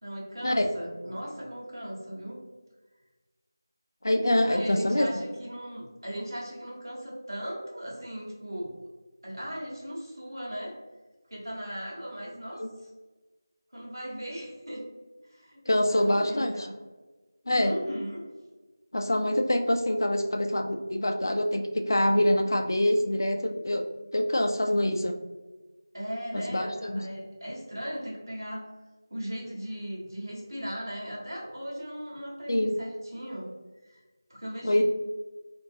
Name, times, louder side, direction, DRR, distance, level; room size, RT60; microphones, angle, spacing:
voice 1, 0.0-2.4 4.4-8.7 9.2-10.8 11.3-12.9 13.7-14.9 15.3-16.7 17.5-18.3 25.9-28.7 29.1-33.5 33.8-34.0 34.3-34.8, equal, 70° right, -4 dB, 1.2 m, -38 dB
voice 2, 4.0-5.2 12.6-12.7 15.7-16.5 17.5-17.7 18.9-23.8 24.1-25.2 26.3-27.0 32.5-32.8 34.6-34.8, left 1 dB, 65° left, 5 dB, 0.4 m, -25 dB
3.0 x 2.5 x 2.7 m, 1.2 s
figure-of-eight pair, 175°, 2 cm